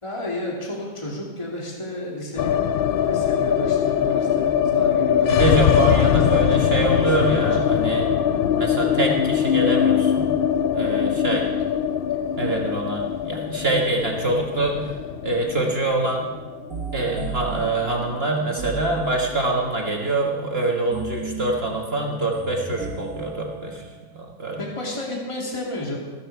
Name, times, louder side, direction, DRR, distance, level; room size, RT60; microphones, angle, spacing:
voice 1, 0.0-2.5 3.1-5.7 6.2-7.7 24.6-26.0, left 1 dB, 20° left, -2 dB, 2.5 m, -32 dB
sound 1, 2.4-18.5 18.7-18.8 19.1-19.8, left 9 dB, 90° left, 0.4 m, -22 dB
voice 2, 5.3-10.3 10.7-11.5 12.4-14.9 15.2-16.3 16.9-24.6, right 2 dB, 45° right, 0 dB, 1.7 m, -25 dB
sound 2, 16.7-19.7 20.9-24.2, right 4 dB, 75° right, 2.0 m, -35 dB
14.5 x 12.5 x 4.6 m, 1.3 s
omnidirectional pair, 1.5 m